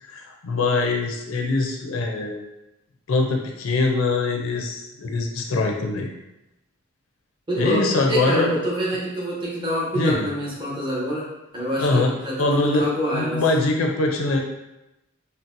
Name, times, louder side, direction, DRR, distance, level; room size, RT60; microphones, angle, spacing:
voice 1, 0.0-2.4 3.1-6.1 7.6-8.6 9.9-10.3 11.8-12.1 12.4-14.4, left 3 dB, 75° left, 2 dB, 0.5 m, -23 dB
voice 2, 7.5-11.2 11.5-13.4, equal, 25° right, -6 dB, 0.9 m, -26 dB
3.9 x 2.0 x 2.5 m, 0.95 s
head